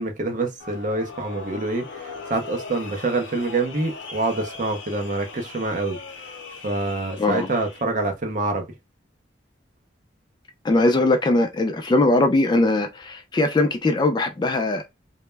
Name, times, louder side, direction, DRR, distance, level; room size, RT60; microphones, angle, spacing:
voice 1, 0.0-6.3 6.6-8.6, right 2 dB, 45° right, 0.5 m, -26 dB
sound 1, 0.6-7.8, left 4 dB, 85° left, 0.6 m, -39 dB
voice 2, 7.2-7.5 10.6-14.9, left 2 dB, 25° left, 0.3 m, -20 dB
2.1 x 2.0 x 3.2 m
head